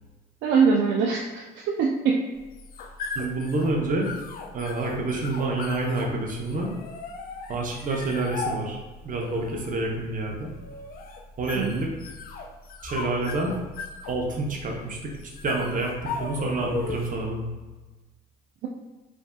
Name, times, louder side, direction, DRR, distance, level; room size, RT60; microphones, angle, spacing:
voice 1, 0.4-2.2 11.5-11.8, right 5 dB, 60° right, -1 dB, 0.4 m, -23 dB
sound 1, 2.4-17.3, left 4 dB, 45° left, 0.4 m, -37 dB
voice 2, 3.1-4.1 4.5-6.7 7.5-10.5 11.4-11.9 12.8-13.6 14.1-15.1 15.4-17.5, right 2 dB, 40° right, 0 dB, 0.8 m, -28 dB
3.4 x 2.5 x 2.2 m, 1.2 s
hypercardioid pair, 60°, 21 cm